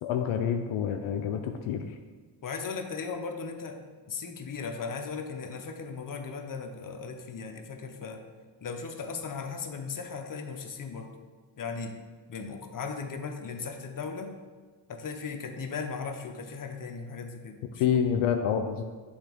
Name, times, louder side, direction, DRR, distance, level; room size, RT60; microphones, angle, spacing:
voice 1, 0.0-2.0 17.8-18.8, left 8 dB, 80° left, 5 dB, 0.6 m, -27 dB
voice 2, 2.4-3.8 4.1-8.2 8.6-11.1 11.6-12.0 12.3-14.3 14.9-18.0, left 5 dB, 40° left, 5 dB, 0.8 m, -37 dB
8.1 x 3.4 x 3.6 m, 1.4 s
supercardioid pair, 60°, 49 cm